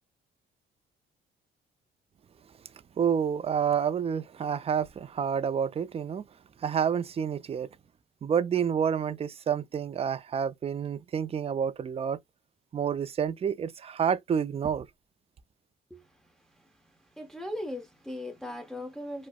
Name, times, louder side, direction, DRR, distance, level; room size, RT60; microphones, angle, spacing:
voice 1, 3.0-6.2 6.6-7.7 8.2-12.2 12.7-14.9, right 7 dB, 30° right, 0.4 m, -29 dB
voice 2, 15.9-16.7 17.0-19.3, left 1 dB, ahead, 0.8 m, -39 dB
4.7 x 2.1 x 2.2 m
cardioid pair, 90°, 20 cm